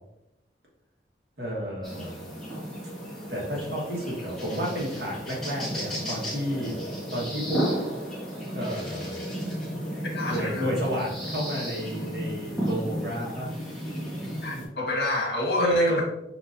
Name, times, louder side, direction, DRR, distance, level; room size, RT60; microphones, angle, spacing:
voice 1, 1.4-2.2 3.3-6.8 7.1-7.6 8.5-9.2 10.2-13.5 15.6-16.0, equal, 65° right, -3 dB, 1.5 m, -30 dB
sound 1, 1.8-14.6, equal, 5° left, 1.4 m, -33 dB
voice 2, 10.1-10.7 14.4-16.0, left 2 dB, 65° left, -2 dB, 1.4 m, -28 dB
6.1 x 2.9 x 2.6 m, 0.90 s
head